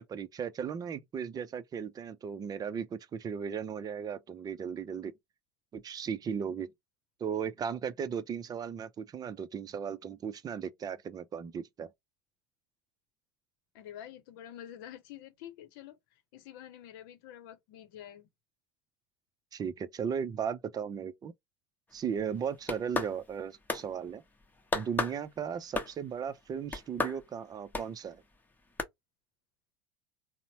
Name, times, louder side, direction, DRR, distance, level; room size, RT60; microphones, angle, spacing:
voice 1, 0.0-5.1 5.7-6.7 7.2-11.9 19.5-21.3 21.9-24.2 24.7-28.2, right 7 dB, 30° right, 0.6 m, -36 dB
voice 2, 13.7-16.0 16.3-18.3, left 11 dB, 65° left, 0.8 m, -48 dB
sound 1, 22.4-23.4 23.7-23.9 24.7-25.2 25.7-26.1 26.7-27.2 27.7-27.9 28.8-28.9, left 3 dB, 15° left, 1.0 m, -32 dB
3.9 x 2.1 x 2.8 m
hypercardioid pair, 75°, 12 cm